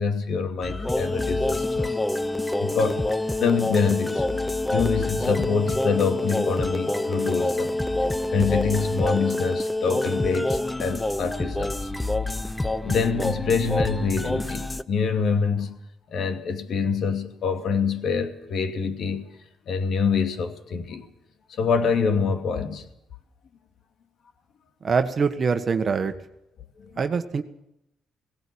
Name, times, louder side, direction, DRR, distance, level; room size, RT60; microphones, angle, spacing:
voice 1, 0.0-2.0 2.6-3.0 3.4-4.3 4.7-7.7 8.3-11.9 12.8-15.8 16.1-19.3 19.7-21.0 21.5-22.9 26.8-26.9, left 5 dB, 65° left, 2.6 m, -25 dB
sound 1, 0.6-14.8, left 2 dB, 10° left, 0.9 m, -26 dB
voice 2, 24.8-26.1 27.0-27.4, right 5 dB, 45° right, 1.4 m, -24 dB
17.5 x 17.0 x 8.7 m
cardioid pair, 90°, 0 cm